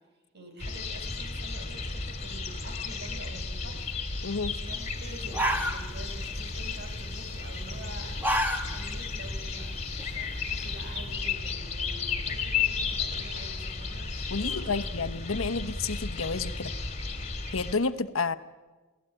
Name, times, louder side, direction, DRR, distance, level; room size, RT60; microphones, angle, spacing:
voice 1, 0.3-8.2 8.7-14.9, right 1 dB, 55° right, 5 dB, 5.5 m, -47 dB
sound 1, 0.6-17.8, left 4 dB, 35° left, 2.6 m, -34 dB
voice 2, 4.2-4.5 14.3-16.7 17.5-18.3, left 4 dB, 85° left, 12 dB, 1.0 m, -30 dB
sound 2, 4.9-5.0 5.2-6.2 6.5-6.9 7.9-9.0 9.4-9.5 10.0-11.0, equal, 10° right, 1.8 m, -29 dB
29.5 x 17.0 x 8.9 m, 1.3 s
head